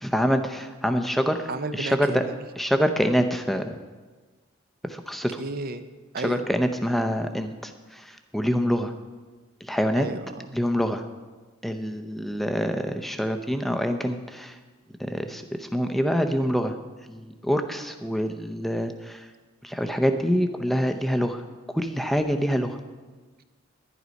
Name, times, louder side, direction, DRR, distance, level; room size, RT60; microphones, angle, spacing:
voice 1, 0.0-2.2 2.6-3.8 4.8-5.4 6.2-8.9 9.6-10.1 10.5-11.0 11.6-14.6 15.0-16.8 17.1-19.3 19.6-21.4 21.7-22.8, equal, ahead, 7 dB, 0.6 m, -26 dB
voice 2, 1.5-2.4 5.4-5.8 6.1-6.5 10.0-10.5, right 3 dB, 45° right, 10 dB, 0.6 m, -32 dB
11.0 x 11.0 x 5.2 m, 1.3 s
head